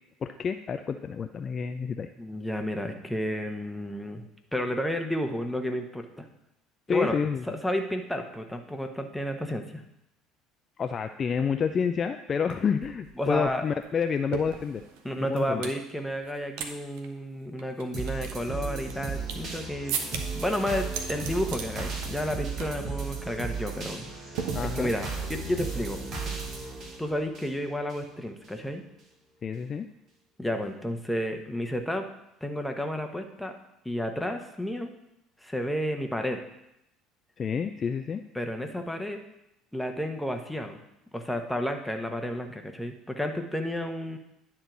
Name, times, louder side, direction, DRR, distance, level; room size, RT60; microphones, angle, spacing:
voice 1, 0.2-2.1 6.9-7.6 10.8-14.8 15.3-15.7 24.5-25.0 29.4-29.9 37.4-38.2, left 6 dB, 35° left, 8 dB, 0.4 m, -29 dB
voice 2, 2.2-4.2 4.5-6.3 6.9-7.1 7.5-9.8 13.2-13.6 15.0-20.0 20.3-24.0 24.6-26.0 27.0-28.8 30.4-32.1 32.4-33.5 33.8-34.9 35.4-36.4 38.3-39.2 39.7-40.8 41.1-44.2, equal, 5° left, 5 dB, 1.1 m, -31 dB
sound 1, 12.5-12.6 12.8-15.8 16.2-16.7 17.0-17.1 17.6-19.5 19.9-20.5 20.8-21.7 22.0-22.3 22.6-22.9 23.2-23.4 24.4-25.1, right 7 dB, 60° right, 0.8 m, -37 dB
sound 2, 17.9-28.0 28.4-28.5, right 4 dB, 45° right, 2.0 m, -35 dB
10.0 x 4.5 x 6.1 m, 0.85 s
figure-of-eight pair, 60°, 0 cm